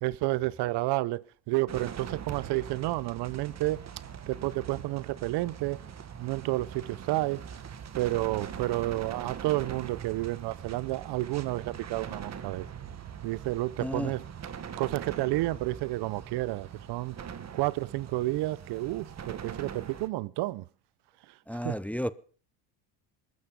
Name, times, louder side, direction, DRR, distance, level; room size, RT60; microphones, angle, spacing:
voice 1, 0.0-3.8 4.3-5.8 6.2-7.4 7.9-12.7 13.2-14.2 14.8-17.2 17.5-20.6 21.6-21.8, right 18 dB, 65° right, 0.8 m, -30 dB
sound 1, 1.7-20.1, right 8 dB, 35° right, 1.7 m, -42 dB
voice 2, 13.8-14.1 21.5-22.1, equal, 5° left, 0.8 m, -32 dB
21.0 x 13.0 x 5.2 m
supercardioid pair, 95°, 43 cm